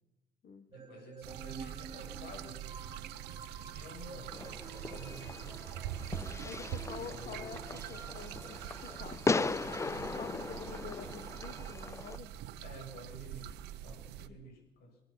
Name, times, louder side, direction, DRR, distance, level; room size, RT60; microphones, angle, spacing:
voice 1, 0.7-2.8 3.6-6.0 6.9-7.6 12.6-15.0, right 1 dB, 70° left, 3 dB, 7.7 m, -50 dB
sound 1, 0.7-9.1, right 4 dB, 25° right, 2.4 m, -51 dB
sound 2, 1.2-14.3, right 11 dB, 90° right, 0.9 m, -44 dB
Fireworks, 4.3-12.2, left 3 dB, 15° left, 0.6 m, -38 dB
voice 2, 6.4-9.5 10.0-12.3 14.3-14.4, left 7 dB, 50° left, 9 dB, 1.7 m, -48 dB
25.0 x 18.0 x 6.0 m, 0.97 s
cardioid pair, 110°, 17 cm